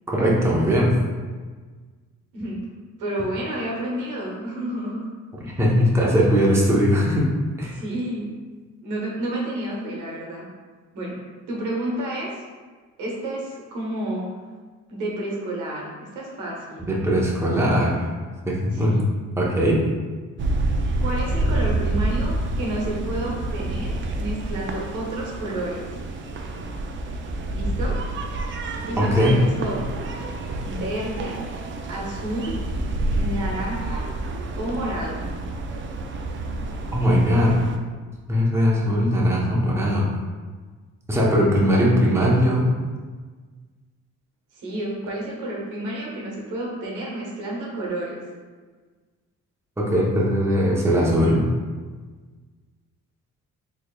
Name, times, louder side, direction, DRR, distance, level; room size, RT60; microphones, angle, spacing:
voice 1, 0.1-1.0 5.4-7.3 7.6-7.8 16.8-18.0 18.5-19.0 19.4-19.9 29.0-29.4 36.9-37.6 38.3-40.1 41.1-42.7 49.8-51.5, equal, 10° right, -4 dB, 0.8 m, -20 dB
voice 2, 3.0-5.1 5.5-5.6 7.7-8.4 8.8-10.5 10.9-11.2 11.5-12.4 13.0-14.3 14.9-16.9 18.7-19.0 21.0-25.9 27.5-28.0 28.8-29.8 30.6-31.4 31.9-32.7 33.1-34.1 34.6-35.2 44.5-48.2, right 1 dB, 90° right, -3 dB, 1.0 m, -30 dB
sound 1, 20.4-37.8, right 2 dB, 40° right, 0.4 m, -28 dB
3.9 x 3.3 x 2.3 m, 1.4 s
cardioid pair, 90°, 30 cm